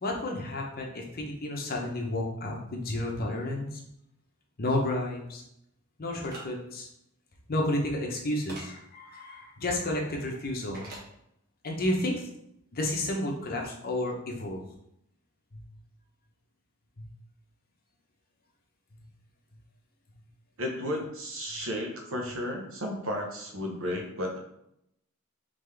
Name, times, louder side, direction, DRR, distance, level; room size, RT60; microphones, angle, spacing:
voice 1, 0.0-3.8 4.6-5.4 6.0-6.9 7.5-10.9 11.6-12.2 12.7-14.6 15.5-15.6 17.0-17.1, left 1 dB, 40° left, 0 dB, 0.8 m, -31 dB
sound 1, 6.2-6.4 8.5-8.7 10.7-11.1, right 1 dB, 45° right, 1.3 m, -42 dB
voice 2, 20.6-24.4, left 1 dB, 60° right, 1 dB, 0.9 m, -33 dB
3.8 x 3.5 x 3.4 m, 0.78 s
head